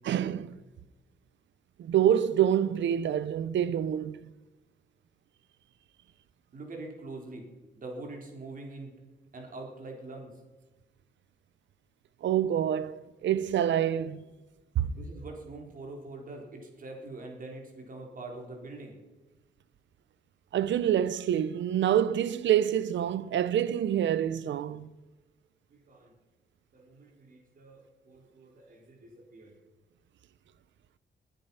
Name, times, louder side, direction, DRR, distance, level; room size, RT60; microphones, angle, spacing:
voice 1, 0.0-0.6 1.8-4.3 12.2-14.2 14.8-14.9 20.5-24.9, right 10 dB, 80° right, 0.7 m, -27 dB
voice 2, 6.5-7.4 7.8-8.9 9.3-10.3 14.9-19.0 25.7-26.1 26.7-29.5, right 2 dB, 45° right, 4.0 m, -44 dB
20.5 x 9.2 x 5.6 m
wide cardioid pair, 140°, 19 cm